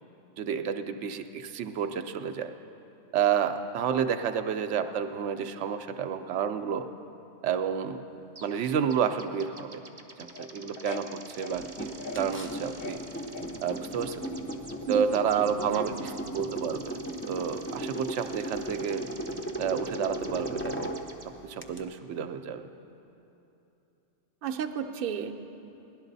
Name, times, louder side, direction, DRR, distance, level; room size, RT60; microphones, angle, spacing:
voice 1, 0.4-2.5 3.1-6.9 7.4-8.0 8.4-9.8 10.2-13.0 13.6-14.2 14.9-17.0 17.3-19.0 19.6-21.0 21.4-22.7, right 7 dB, 85° right, 7 dB, 0.9 m, -30 dB
sound 1, 8.4-8.6 8.9-21.3, right 3 dB, 25° right, 0.6 m, -49 dB
sound 2, 10.2-12.3 12.5-13.8 14.3-14.8 16.8-16.9, left 4 dB, 60° left, 0.9 m, -42 dB
sound 3, 11.5-21.8, right 1 dB, 15° left, 0.4 m, -37 dB
voice 2, 15.3-16.2 24.4-25.3, right 7 dB, 60° right, 6 dB, 0.8 m, -33 dB
17.5 x 11.5 x 4.0 m, 2.9 s
omnidirectional pair, 1.2 m